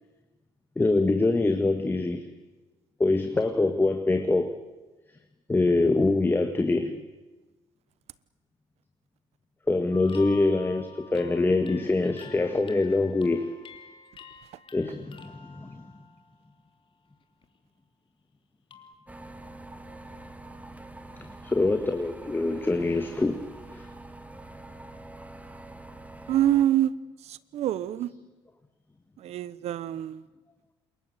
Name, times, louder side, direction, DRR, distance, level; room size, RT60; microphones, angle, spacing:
voice 1, 0.8-2.3 3.0-4.6 5.5-7.0 9.7-13.5 14.7-15.8 21.2-23.4 23.7-23.9, left 2 dB, 20° left, 7 dB, 1.9 m, -24 dB
sound 1, 9.9-16.8 17.2-17.6 18.7-18.9, left 5 dB, 45° left, 3.0 m, -49 dB
sound 2, 19.1-26.7, right 2 dB, 10° right, 2.3 m, -45 dB
voice 2, 26.3-26.9 27.2-28.1 29.2-30.2, right 12 dB, 65° right, 18 dB, 1.2 m, -26 dB
28.0 x 22.0 x 8.1 m, 1.2 s
supercardioid pair, 70°, 12 cm